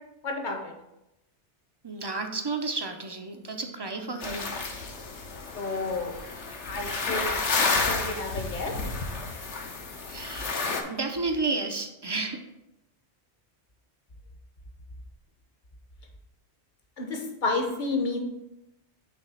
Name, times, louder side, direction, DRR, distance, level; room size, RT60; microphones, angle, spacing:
voice 1, 0.2-0.7 5.5-6.2 6.6-7.3 7.9-8.7 17.0-18.2, left 3 dB, 45° left, 3 dB, 1.1 m, -30 dB
voice 2, 1.8-4.5 10.1-10.6 10.8-12.4, right 3 dB, 30° right, 4 dB, 0.5 m, -31 dB
sound 1, 4.2-10.8, left 3 dB, 75° left, 1.2 m, -31 dB
6.8 x 3.3 x 5.6 m, 0.90 s
omnidirectional pair, 1.2 m